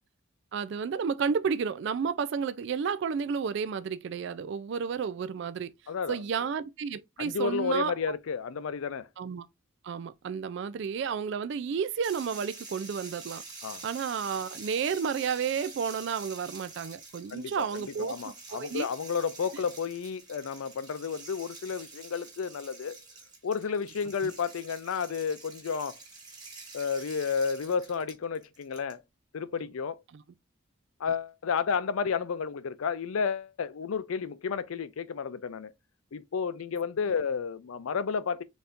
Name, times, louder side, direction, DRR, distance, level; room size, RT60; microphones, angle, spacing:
voice 1, 0.5-5.7 6.1-8.1 9.2-9.5 9.8-13.4 13.8-18.9 30.1-30.2, right 6 dB, 60° right, 0.3 m, -31 dB
voice 2, 5.9-6.5 7.2-9.1 13.6-13.8 17.3-23.0 23.4-26.0 26.7-29.0 29.3-30.0 31.0-35.7 36.1-38.4, left 6 dB, 85° left, 0.4 m, -32 dB
sound 1, 12.0-28.9, right 3 dB, 20° right, 1.2 m, -47 dB
4.0 x 3.4 x 2.5 m
head